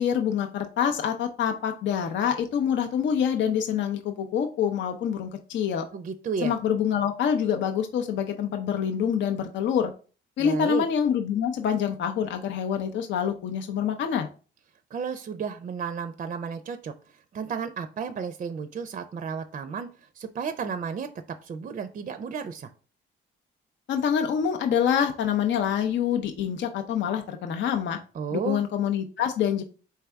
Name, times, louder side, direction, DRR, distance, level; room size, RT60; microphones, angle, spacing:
voice 1, 0.0-5.9 6.4-9.9 10.4-14.3 23.9-28.0 28.3-29.6, left 8 dB, 70° left, 4 dB, 0.6 m, -26 dB
voice 2, 5.9-6.5 10.4-10.8 14.9-21.1 21.4-22.7 28.1-28.6, right 6 dB, 40° right, 9 dB, 0.5 m, -33 dB
4.5 x 3.3 x 3.4 m, 0.37 s
cardioid pair, 90°, 20 cm